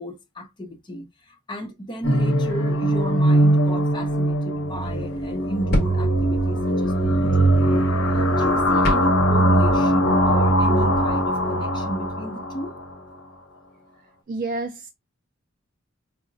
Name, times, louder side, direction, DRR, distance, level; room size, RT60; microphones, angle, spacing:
voice 1, 0.0-12.8, equal, 20° left, 0.5 m, -34 dB
sound 1, 2.0-12.8, right 1 dB, 80° left, 0.7 m, -20 dB
sound 2, 4.8-9.7, equal, 50° left, 0.9 m, -32 dB
voice 2, 14.3-14.9, right 3 dB, 45° right, 0.3 m, -29 dB
4.7 x 2.0 x 2.6 m
head